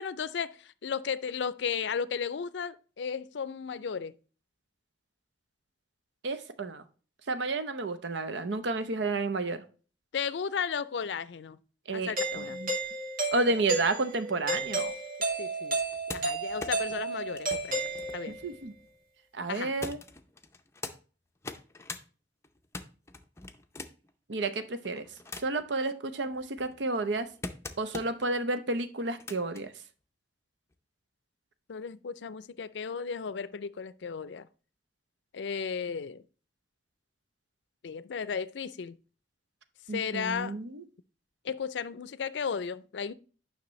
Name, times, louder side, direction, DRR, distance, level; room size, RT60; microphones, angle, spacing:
voice 1, 0.0-4.1 10.1-11.6 11.9-12.6 15.4-15.8 16.1-18.4 19.5-19.7 31.7-34.5 35.3-36.2 37.8-39.0 39.9-40.6 41.4-43.1, left 6 dB, 80° left, 0.4 m, -34 dB
voice 2, 6.2-6.8 7.3-9.6 11.9-12.7 13.3-14.9 18.3-18.7 19.3-20.0 24.3-25.1 25.4-27.3 27.8-29.7 39.9-40.8, right 2 dB, 85° right, 0.8 m, -31 dB
Doorbell, 12.2-18.5, right 2 dB, 50° right, 2.1 m, -32 dB
sound 1, 15.7-19.0 19.8-21.0 21.4-22.0 22.4-24.1 24.8-25.7 26.2-28.3 29.0-29.6 30.7-30.8, left 3 dB, 15° left, 0.5 m, -43 dB
9.5 x 5.9 x 3.1 m
head